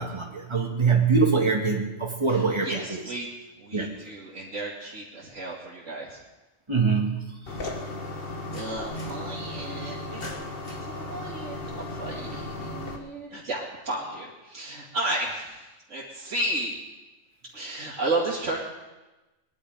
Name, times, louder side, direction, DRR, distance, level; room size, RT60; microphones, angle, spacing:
voice 1, 0.0-2.7 3.7-3.9 6.7-7.3, right 4 dB, 20° right, 0 dB, 2.1 m, -23 dB
voice 2, 2.3-3.3 3.6-6.2 8.3-16.7 17.5-18.6, right 2 dB, 70° right, -8 dB, 2.9 m, -33 dB
sound 1, 7.5-13.0, left 2 dB, 45° left, 1.8 m, -35 dB
20.5 x 11.5 x 5.1 m, 1.1 s
omnidirectional pair, 1.4 m